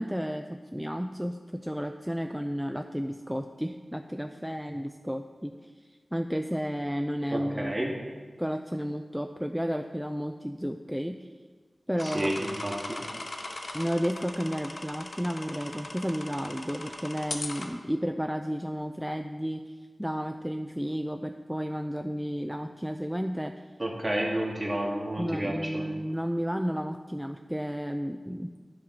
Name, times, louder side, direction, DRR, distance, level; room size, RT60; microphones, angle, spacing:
voice 1, 0.0-5.7 6.1-7.9 8.4-11.3 11.9-12.3 13.7-23.5 25.2-28.5, equal, 5° right, 6 dB, 0.3 m, -32 dB
voice 2, 7.3-7.9 12.0-13.0 23.8-25.9, right 1 dB, 30° right, -1 dB, 1.6 m, -30 dB
sound 1, 12.0-17.7, left 2 dB, 55° left, 0.8 m, -39 dB
10.5 x 3.7 x 5.8 m, 1.5 s
wide cardioid pair, 70°, 0 cm